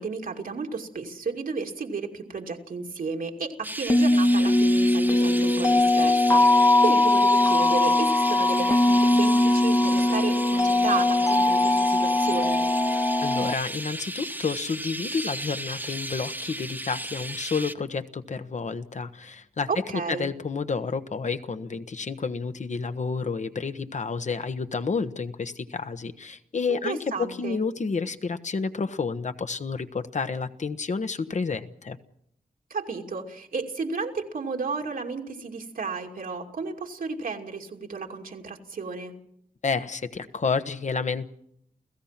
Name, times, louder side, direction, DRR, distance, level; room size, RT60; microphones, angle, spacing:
voice 1, 0.0-12.6 19.7-20.3 26.7-27.6 32.7-39.1, right 4 dB, 80° right, 2 dB, 2.6 m, -33 dB
Chirp tweet, 3.6-17.7, right 1 dB, 15° right, 1.1 m, -35 dB
sound 1, 3.9-13.5, left 2 dB, 20° left, 0.9 m, -20 dB
voice 2, 13.2-19.7 20.1-27.0 27.3-32.0 39.6-41.3, left 4 dB, 55° left, 10 dB, 1.2 m, -30 dB
29.5 x 16.5 x 5.9 m, 0.73 s
wide cardioid pair, 80°, 14 cm